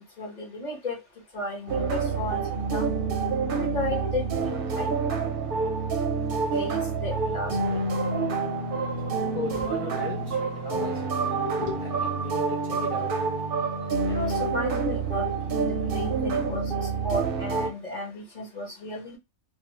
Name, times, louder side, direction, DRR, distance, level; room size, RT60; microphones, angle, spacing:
voice 1, 0.2-1.0 1.3-2.9 3.5-4.9 6.5-7.8 9.5-9.7 14.1-15.3 15.7-16.6 17.0-19.2, left 2 dB, 35° left, 0.9 m, -34 dB
sound 1, 1.7-17.7, right 4 dB, 55° right, 0.6 m, -27 dB
voice 2, 6.2-6.6 8.1-14.3, left 4 dB, 75° left, 0.3 m, -39 dB
2.5 x 2.2 x 2.9 m
omnidirectional pair, 1.4 m